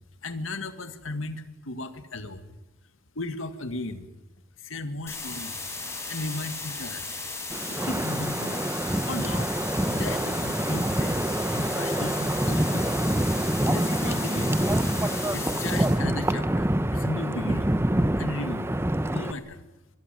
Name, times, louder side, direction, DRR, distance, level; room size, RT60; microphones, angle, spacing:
voice 1, 0.2-2.5 3.2-4.1 4.6-5.6 6.1-7.1 7.7-8.7 9.1-9.5 9.9-11.2 11.5-12.9 13.7-14.6 15.3-17.7 18.2-18.8 19.1-19.6, left 2 dB, 70° left, 10 dB, 2.0 m, -35 dB
sound 1, 5.1-16.0, left 3 dB, 15° left, 6.0 m, -36 dB
Wind, 7.5-19.3, right 1 dB, 10° right, 0.8 m, -26 dB
24.5 x 21.5 x 9.1 m, 0.99 s
head